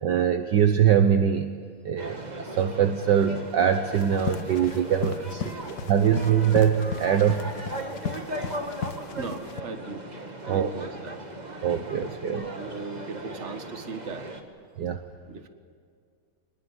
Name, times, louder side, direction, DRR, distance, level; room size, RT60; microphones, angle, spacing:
voice 1, 0.0-1.5 1.8-7.4 10.5-10.7 11.6-12.5 14.8-15.0, right 8 dB, 60° right, 8 dB, 1.5 m, -23 dB
sound 1, 2.0-14.4, right 1 dB, 20° right, 2.1 m, -38 dB
sound 2, 3.9-9.6, left 7 dB, 55° left, 1.3 m, -35 dB
voice 2, 7.8-11.2 12.2-14.3 15.3-15.5, right 4 dB, 35° right, 8 dB, 1.9 m, -39 dB
24.0 x 21.0 x 9.7 m, 2.2 s
omnidirectional pair, 2.3 m